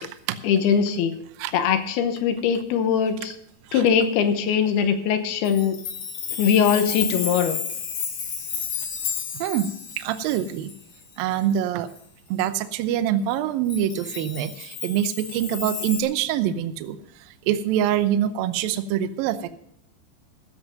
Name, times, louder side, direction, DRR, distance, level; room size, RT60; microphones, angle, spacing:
voice 1, 0.4-1.1 1.5-3.4 3.7-5.8 6.4-7.6, left 7 dB, 75° left, 8 dB, 2.8 m, -21 dB
Chime, 5.4-11.5 12.0-12.1 13.7-16.0, left 7 dB, 60° left, 3.3 m, -32 dB
voice 2, 9.3-10.7 11.2-11.9 12.3-19.5, right 10 dB, 80° right, 11 dB, 2.1 m, -25 dB
15.5 x 7.9 x 5.2 m, 0.74 s
omnidirectional pair, 4.9 m